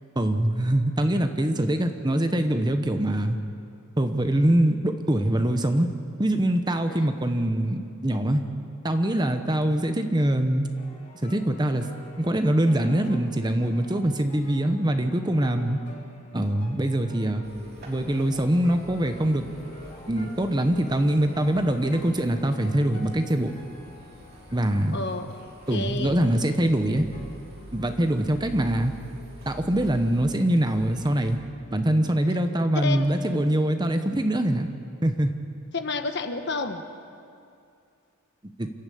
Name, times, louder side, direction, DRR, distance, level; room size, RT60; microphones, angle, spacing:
voice 1, 0.2-3.4 4.0-5.9 6.2-8.4 8.8-10.7 11.2-11.9 12.2-15.8 16.3-17.4 17.8-19.5 20.1-23.5 24.5-25.0 25.7-27.1 27.7-28.9 29.5-31.4 31.7-34.7 35.0-35.3 38.6-38.7, right 1 dB, 20° right, 7 dB, 0.9 m, -23 dB
sound 1, 10.7-28.3, left 1 dB, 35° left, 2.3 m, -48 dB
sound 2, 17.4-31.4, equal, 45° right, 3.1 m, -46 dB
voice 2, 24.9-26.2 32.8-33.1 35.7-36.8, left 3 dB, 50° left, 7 dB, 1.2 m, -31 dB
28.5 x 13.0 x 8.6 m, 2.5 s
head